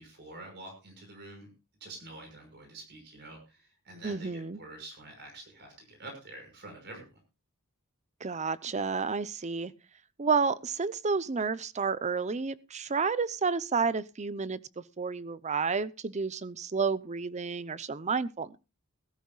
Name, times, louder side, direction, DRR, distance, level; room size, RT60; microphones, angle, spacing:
voice 1, 0.0-1.5 1.8-7.2, right 2 dB, 50° right, 4 dB, 5.5 m, -47 dB
voice 2, 4.0-4.6 8.2-9.7 10.2-18.6, right 5 dB, 30° right, 16 dB, 0.6 m, -31 dB
19.5 x 13.0 x 2.4 m, 0.28 s
head